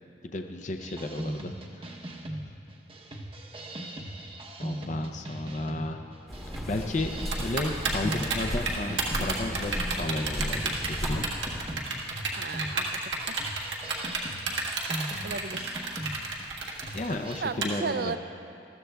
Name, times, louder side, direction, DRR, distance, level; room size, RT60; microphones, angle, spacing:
voice 1, 0.3-1.9 4.6-6.0 6.7-7.1 7.4-11.3 16.9-18.1, left 2 dB, 40° left, 5 dB, 0.5 m, -33 dB
sound 1, 0.8-17.4, right 1 dB, 30° right, 0.8 m, -40 dB
sound 2, 6.3-11.7, equal, 5° left, 1.0 m, -35 dB
Typing, 7.3-17.7, right 4 dB, 80° right, 1.5 m, -31 dB
voice 2, 12.4-13.0 13.3-13.4 15.2-15.8 17.4-18.2, right 4 dB, 55° right, 11 dB, 0.4 m, -35 dB
20.0 x 14.0 x 2.3 m, 2.6 s
head